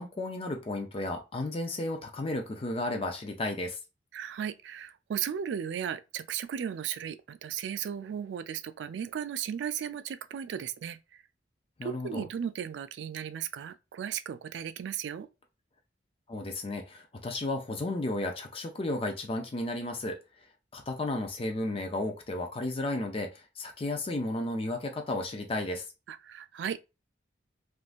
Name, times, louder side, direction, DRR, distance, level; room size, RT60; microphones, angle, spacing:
voice 1, 0.0-3.8 11.8-12.2 16.3-20.2 20.7-25.9, left 2 dB, 30° left, 0.4 m, -33 dB
voice 2, 4.1-11.0 11.8-15.3 26.1-26.8, right 8 dB, 70° right, 0.3 m, -36 dB
3.5 x 2.5 x 2.4 m
head